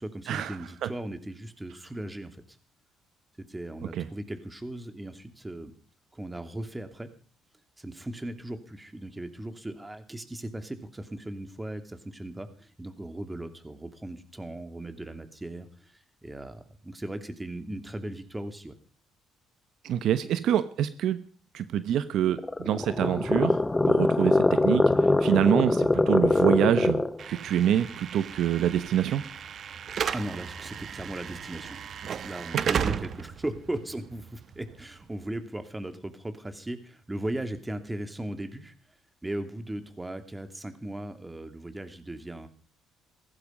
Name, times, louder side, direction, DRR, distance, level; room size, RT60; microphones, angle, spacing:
voice 1, 0.0-2.6 3.4-5.7 6.1-7.1 7.8-18.7 30.1-31.8 32.2-38.7 39.2-42.5, right 1 dB, 15° right, 8 dB, 2.8 m, -37 dB
voice 2, 19.8-21.2 21.5-29.2, right 10 dB, 70° right, 13 dB, 1.1 m, -26 dB
sound 1, 22.3-27.2, left 2 dB, 15° left, 1.1 m, -23 dB
Slam / Alarm, 27.2-35.3, right 8 dB, 55° right, 1.0 m, -35 dB
17.0 x 15.0 x 5.3 m, 0.42 s
supercardioid pair, 75°, 0 cm